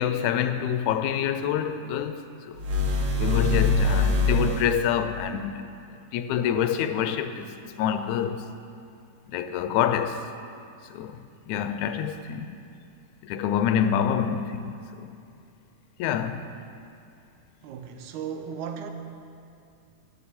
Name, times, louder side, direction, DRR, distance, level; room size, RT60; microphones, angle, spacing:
voice 1, 0.0-2.2 2.5-2.6 3.2-5.7 6.1-7.5 7.8-8.5 9.3-10.2 10.9-12.6 13.2-15.1 16.0-16.4, left 9 dB, 80° left, 1.9 m, -26 dB
sound 1, 2.5-5.0, left 2 dB, 60° right, 1.3 m, -24 dB
voice 2, 17.6-18.9, right 7 dB, 80° right, 2.1 m, -35 dB
16.0 x 10.0 x 4.3 m
omnidirectional pair, 3.5 m